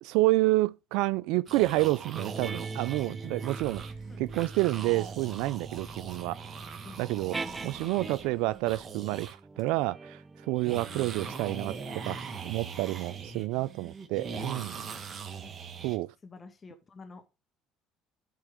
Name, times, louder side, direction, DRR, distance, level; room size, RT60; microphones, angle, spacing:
voice 1, 0.0-3.8 4.2-6.4 7.0-10.2 10.5-12.2 12.4-14.8 15.8-16.1, right 19 dB, 80° right, 0.3 m, -29 dB
sound 1, 1.5-9.3 9.6-9.7 10.5-16.0, right 5 dB, 40° right, 1.8 m, -41 dB
sound 2, 2.1-8.5 9.3-14.2, right 3 dB, 20° right, 0.5 m, -43 dB
sound 3, 3.6-8.9, right 7 dB, 60° right, 1.4 m, -57 dB
voice 2, 7.4-8.0 10.9-11.2 14.8-15.3 16.2-17.3, left 4 dB, 35° left, 1.9 m, -50 dB
12.0 x 4.5 x 3.7 m
supercardioid pair, 85°, 0 cm